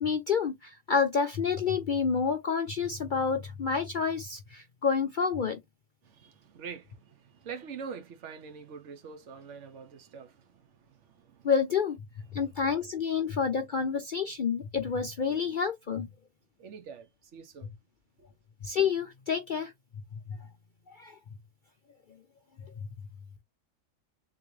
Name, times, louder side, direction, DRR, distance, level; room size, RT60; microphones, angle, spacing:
voice 1, 0.0-5.6 11.4-12.0 12.3-16.1 18.6-19.7 20.9-21.2, left 6 dB, 55° left, 0.6 m, -29 dB
voice 2, 6.0-11.5 12.3-12.4 16.6-17.7, right 6 dB, 65° right, 1.1 m, -45 dB
3.9 x 3.2 x 3.1 m
omnidirectional pair, 1.4 m